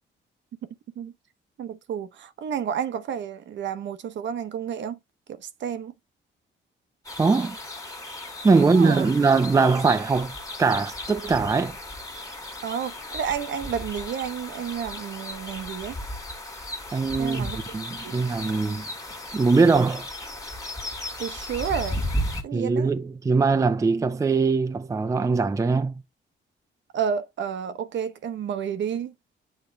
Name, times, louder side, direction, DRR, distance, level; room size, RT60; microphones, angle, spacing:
voice 1, 1.6-5.0 5.3-5.9 8.6-9.1 12.6-16.0 17.2-17.8 18.0-18.2 21.2-22.0 22.4-22.9 26.9-29.1, right 8 dB, 65° right, 0.8 m, -31 dB
sound 1, 7.0-22.4, left 1 dB, 15° left, 1.6 m, -35 dB
voice 2, 7.2-7.6 8.4-11.8 16.9-18.9 19.3-20.1 22.5-26.0, right 4 dB, 15° right, 0.4 m, -22 dB
8.1 x 3.7 x 3.2 m
cardioid pair, 110°, 20 cm